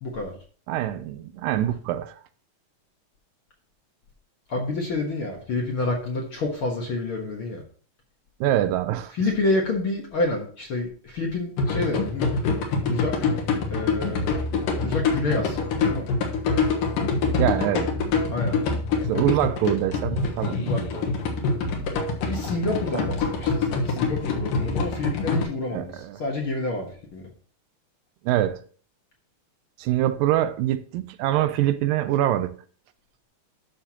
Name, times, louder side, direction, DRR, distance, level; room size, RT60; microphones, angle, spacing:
voice 1, 0.0-0.3 4.5-7.6 9.1-12.3 12.9-13.2 13.7-14.3 14.8-16.1 18.3-18.6 20.6-21.1 22.3-27.2, left 2 dB, 50° left, 1.7 m, -28 dB
voice 2, 0.7-2.2 8.4-9.1 17.4-17.9 19.1-20.7 25.7-26.2 28.3-28.6 29.8-32.5, right 13 dB, 80° right, 2.3 m, -24 dB
sound 1, 11.6-25.4, left 4 dB, 80° left, 2.9 m, -25 dB
11.5 x 6.7 x 2.9 m
omnidirectional pair, 3.9 m